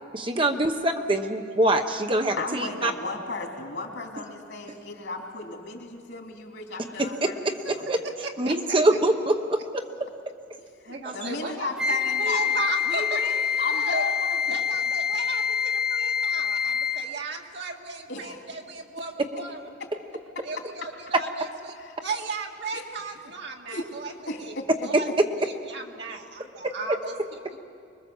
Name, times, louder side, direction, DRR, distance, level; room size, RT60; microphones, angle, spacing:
voice 1, 0.1-2.9 7.4-8.0 8.4-9.8, right 1 dB, 25° right, 5 dB, 1.0 m, -24 dB
voice 2, 2.4-7.9 10.8-12.5 12.9-14.6 18.1-18.4 21.8-21.9 22.7-22.9 23.7-23.9 24.3-25.1, left 3 dB, 65° left, 1 dB, 3.4 m, -35 dB
voice 3, 8.2-8.6 10.9-13.2 13.7-14.0 14.5-19.6 20.4-21.7 22.0-24.1 24.4-24.6 24.8-25.1 25.4-27.2 27.5-27.6, right 4 dB, 60° right, 1 dB, 2.1 m, -36 dB
Wind instrument woodwind instrument, 11.8-17.2, left 7 dB, 5° right, 0.6 m, -26 dB
24.5 x 21.5 x 7.2 m, 2.4 s
head